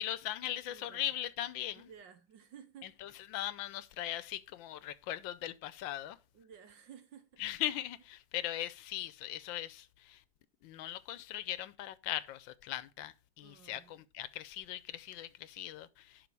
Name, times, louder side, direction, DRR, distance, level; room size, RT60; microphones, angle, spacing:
voice 1, 0.0-1.9 2.8-6.2 7.4-10.2 10.6-16.3, left 12 dB, 90° left, 1.4 m, -39 dB
voice 2, 0.7-1.1 1.7-3.0 6.3-7.4 13.4-14.0, right 8 dB, 75° right, 1.8 m, -55 dB
11.0 x 4.2 x 4.7 m
omnidirectional pair, 2.1 m